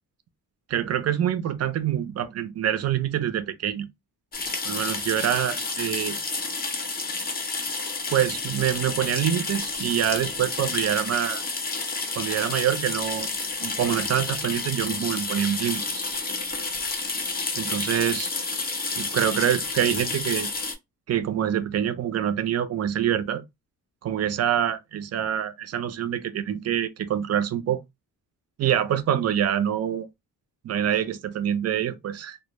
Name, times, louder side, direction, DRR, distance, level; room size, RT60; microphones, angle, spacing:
voice 1, 0.7-3.9 4.6-6.2 8.1-11.4 12.2-13.3 13.6-15.8 17.6-18.3 19.0-20.5 21.1-23.4 24.0-27.8 28.6-30.1 30.6-32.4, right 10 dB, 45° right, 0.4 m, -25 dB
sound 1, 4.3-20.7, left 3 dB, 25° left, 0.5 m, -30 dB
2.0 x 2.0 x 3.0 m
cardioid pair, 105°, 36 cm